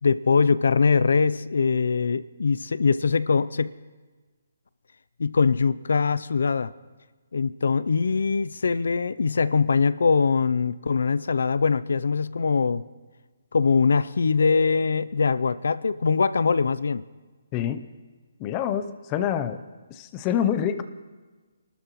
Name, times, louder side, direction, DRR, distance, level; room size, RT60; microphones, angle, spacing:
voice 1, 0.0-3.7 5.2-6.7 7.3-12.8 13.5-17.0, left 5 dB, 75° left, 18 dB, 0.4 m, -22 dB
voice 2, 17.5-17.9 18.4-19.6 19.9-20.8, left 9 dB, 20° left, 10 dB, 0.5 m, -26 dB
28.0 x 13.0 x 3.0 m, 1.3 s
hypercardioid pair, 165°, 0 cm